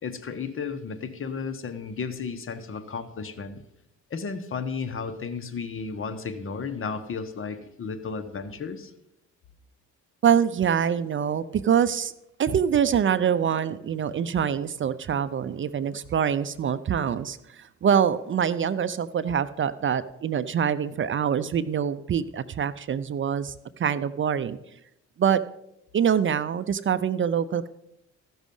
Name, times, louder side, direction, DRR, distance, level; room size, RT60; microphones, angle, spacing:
voice 1, 0.0-3.6 4.1-8.9, left 5 dB, 45° left, 9 dB, 1.2 m, -33 dB
voice 2, 10.2-12.1 12.4-24.6 25.2-25.4 25.9-27.7, right 8 dB, 40° right, 14 dB, 0.5 m, -25 dB
14.5 x 6.2 x 5.4 m, 0.83 s
cardioid pair, 90°, 30 cm